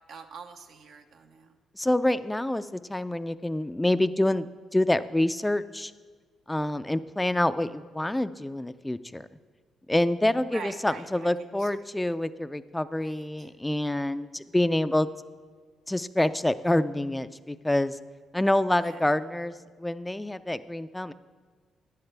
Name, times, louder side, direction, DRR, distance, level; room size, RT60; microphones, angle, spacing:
voice 1, 0.1-1.6 10.5-11.3 11.6-11.9 13.0-13.5 18.8-19.0, right 5 dB, 70° right, 5 dB, 0.7 m, -45 dB
voice 2, 1.8-5.9 6.5-9.3 9.9-15.1 15.9-18.0 18.3-19.5 19.8-21.1, left 1 dB, 10° left, 13 dB, 0.4 m, -27 dB
11.5 x 10.0 x 3.4 m, 1.6 s
cardioid pair, 90°, 0 cm